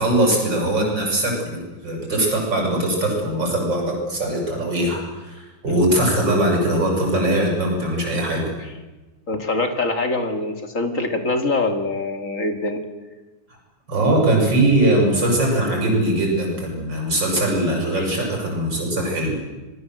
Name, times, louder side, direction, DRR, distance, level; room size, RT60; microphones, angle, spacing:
voice 1, 0.0-8.5 13.9-19.4, right 1 dB, 55° right, 0 dB, 8.0 m, -21 dB
voice 2, 9.3-12.8 18.0-18.1, left 2 dB, 40° left, 6 dB, 2.8 m, -24 dB
27.0 x 21.0 x 7.8 m, 1.2 s
omnidirectional pair, 2.3 m